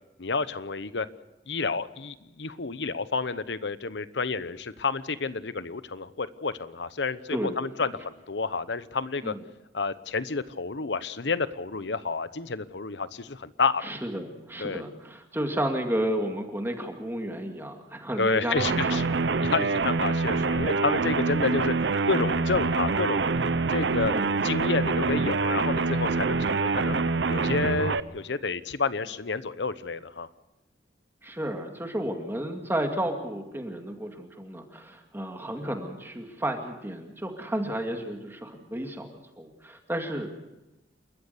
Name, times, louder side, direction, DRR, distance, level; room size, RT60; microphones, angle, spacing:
voice 1, 0.2-1.1 1.5-9.3 9.7-13.9 14.6-14.8 18.2-19.1 19.4-21.7 22.1-23.2 23.7-24.1 24.4-27.0 27.3-30.3, left 4 dB, 80° left, 14 dB, 0.9 m, -30 dB
voice 2, 7.3-7.7 9.2-9.4 13.8-19.6 24.1-24.4 31.2-39.1 39.4-40.4, right 1 dB, 15° right, 3 dB, 2.2 m, -32 dB
sound 1, 18.6-28.0, right 3 dB, 80° right, 0.7 m, -25 dB
29.5 x 14.0 x 6.8 m, 0.98 s
head